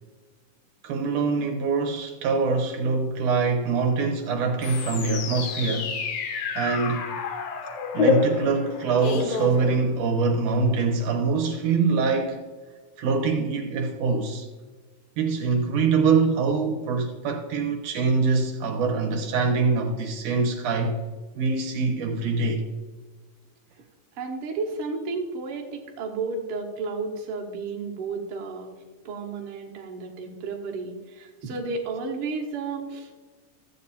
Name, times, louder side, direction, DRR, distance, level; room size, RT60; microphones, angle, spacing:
voice 1, 0.8-5.9 6.6-7.0 7.9-12.4 13.0-14.5 15.2-21.0 21.4-22.7, right 4 dB, 70° right, 2.4 m, -24 dB
sound 1, 4.6-10.3, left 5 dB, 60° left, 1.8 m, -28 dB
voice 2, 24.1-28.7 29.0-33.3, right 4 dB, 50° right, 2.0 m, -32 dB
14.0 x 8.3 x 4.3 m
omnidirectional pair, 3.9 m